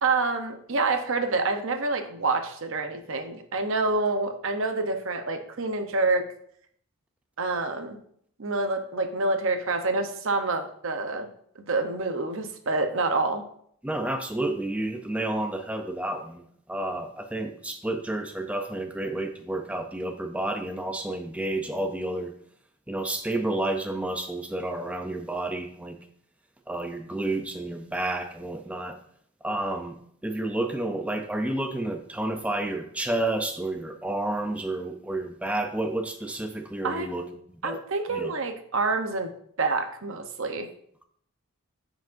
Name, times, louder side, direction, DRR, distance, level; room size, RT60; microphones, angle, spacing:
voice 1, 0.0-6.3 7.4-8.0 8.4-11.3 11.6-13.4 36.8-37.3 37.6-39.3 39.6-40.7, right 3 dB, 60° right, 6 dB, 0.8 m, -27 dB
voice 2, 13.8-22.3 22.9-26.0 26.7-29.0 29.4-30.0 30.2-37.8 38.1-38.3, right 1 dB, 5° right, 6 dB, 0.4 m, -30 dB
9.1 x 5.0 x 2.6 m, 0.65 s
head